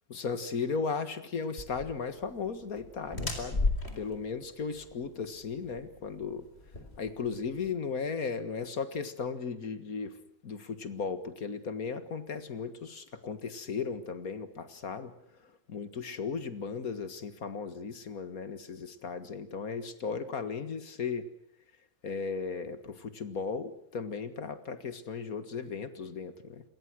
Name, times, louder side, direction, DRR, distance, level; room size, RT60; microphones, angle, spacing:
voice 1, 0.1-3.7 4.0-6.5 7.0-10.2 10.4-15.1 15.7-21.3 22.0-26.6, left 5 dB, 70° left, 11 dB, 2.1 m, -36 dB
sound 1, 1.6-7.7, left 2 dB, 45° left, 4.5 m, -36 dB
28.5 x 22.0 x 6.3 m, 0.71 s
omnidirectional pair, 1.5 m